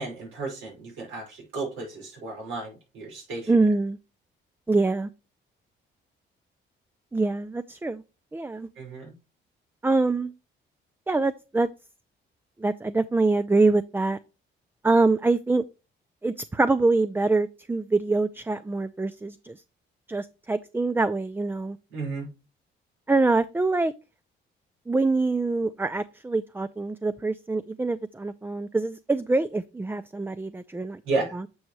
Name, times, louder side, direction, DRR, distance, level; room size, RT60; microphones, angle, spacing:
voice 1, 0.0-3.5 8.8-9.1 21.9-22.3 31.0-31.4, right 3 dB, 85° right, -1 dB, 5.2 m, -33 dB
voice 2, 3.5-4.0 4.7-5.1 7.1-8.0 8.3-8.7 9.8-10.3 11.1-11.7 12.6-14.2 14.8-15.6 16.2-19.5 20.1-21.8 23.1-23.9 24.9-31.0 31.3-31.4, right 3 dB, 10° right, 13 dB, 0.4 m, -24 dB
9.3 x 6.0 x 3.1 m, 0.30 s
cardioid pair, 90°, 20 cm